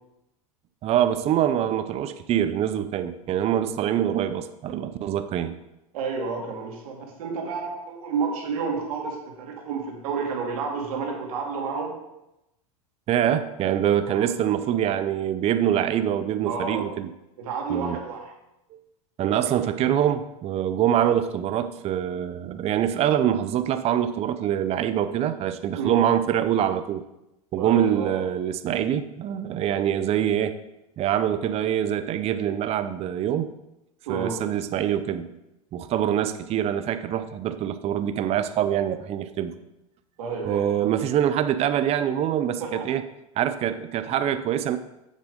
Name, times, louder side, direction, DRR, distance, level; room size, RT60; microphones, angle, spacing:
voice 1, 0.8-5.5 13.1-17.1 17.7-18.0 18.7-18.8 19.2-27.0 27.5-30.5 31.0-33.5 34.1-35.3 35.7-39.5 40.4-43.0 43.4-44.8, right 10 dB, 35° right, 11 dB, 0.5 m, -24 dB
voice 2, 5.9-11.9 14.1-14.2 16.5-16.9 17.4-18.3 25.8-26.0 27.6-28.2 34.1-34.4 40.2-40.8 42.6-42.8, right 5 dB, 75° right, 1 dB, 2.1 m, -30 dB
7.4 x 7.0 x 3.7 m, 0.91 s
hypercardioid pair, 100°, 19 cm